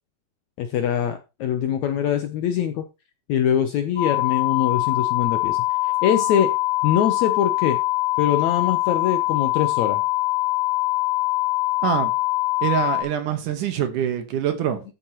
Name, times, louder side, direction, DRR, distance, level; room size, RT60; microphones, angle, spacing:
voice 1, 0.6-2.8 3.3-6.5 6.8-7.8 8.2-10.0, left 9 dB, 75° left, 1.7 m, -23 dB
sound 1, 4.0-13.0, left 18 dB, 25° left, 3.7 m, -23 dB
voice 2, 11.8-12.1 12.6-14.8, right 9 dB, 70° right, 2.6 m, -24 dB
13.5 x 7.2 x 3.0 m
omnidirectional pair, 4.1 m